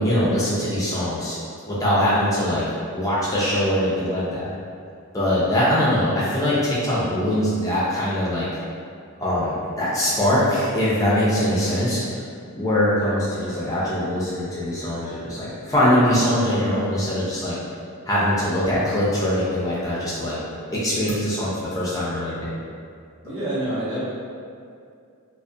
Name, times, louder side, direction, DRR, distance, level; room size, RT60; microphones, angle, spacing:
voice 1, 0.0-1.4 1.7-2.6 2.9-4.5 5.1-8.5 9.2-12.0 12.5-17.6 18.1-20.4 20.7-22.5, left 1 dB, 15° left, -9 dB, 0.4 m, -22 dB
voice 2, 23.2-24.0, right 1 dB, 60° right, -11 dB, 1.0 m, -28 dB
2.3 x 2.1 x 2.5 m, 2.3 s
head